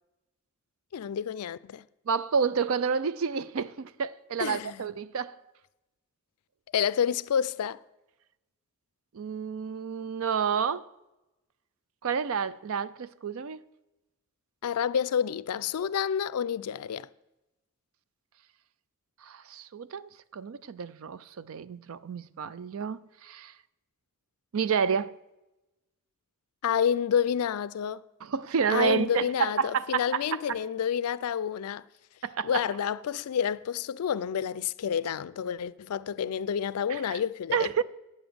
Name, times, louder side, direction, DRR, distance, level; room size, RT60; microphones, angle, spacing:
voice 1, 0.9-1.8 4.4-4.8 6.7-7.8 14.6-17.1 26.6-28.0 28.7-31.8 32.4-37.8, left 8 dB, 85° left, 0.4 m, -29 dB
voice 2, 2.1-5.4 9.1-10.9 12.0-13.6 19.2-23.5 24.5-25.2 28.2-30.2 32.2-32.6 36.9-37.2 37.5-37.8, right 6 dB, 65° right, 0.4 m, -30 dB
9.0 x 7.1 x 7.8 m
head